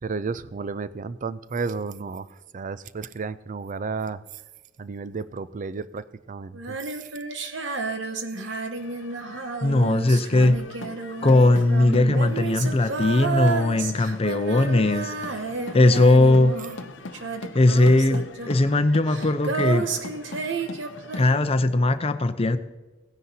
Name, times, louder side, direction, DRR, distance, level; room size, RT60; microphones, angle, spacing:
voice 1, 0.0-4.4 4.8-7.1 8.4-8.7, right 4 dB, 40° right, 15 dB, 0.4 m, -33 dB
Female singing, 6.5-16.9 17.1-21.6, right 4 dB, 70° right, 1.0 m, -31 dB
sound 1, 8.8-21.3, left 3 dB, 70° left, 0.7 m, -41 dB
voice 2, 9.6-10.6 11.2-15.4 15.7-16.6 17.5-19.9 21.2-22.6, left 2 dB, 30° left, 11 dB, 0.6 m, -19 dB
17.5 x 9.7 x 2.8 m, 1.2 s
head